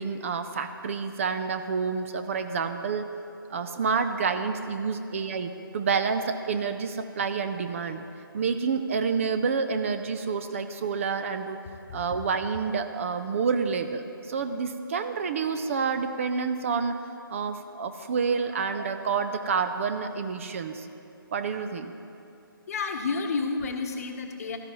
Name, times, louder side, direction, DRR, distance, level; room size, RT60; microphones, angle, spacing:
voice 1, 0.0-3.1 3.5-8.0 8.3-11.6 11.9-16.9 17.3-20.9 21.3-21.9, right 5 dB, 35° right, 9 dB, 0.5 m, -28 dB
voice 2, 22.7-24.6, left 4 dB, 40° left, 4 dB, 1.0 m, -30 dB
16.5 x 13.0 x 3.1 m, 2.6 s
figure-of-eight pair, 145°, 12 cm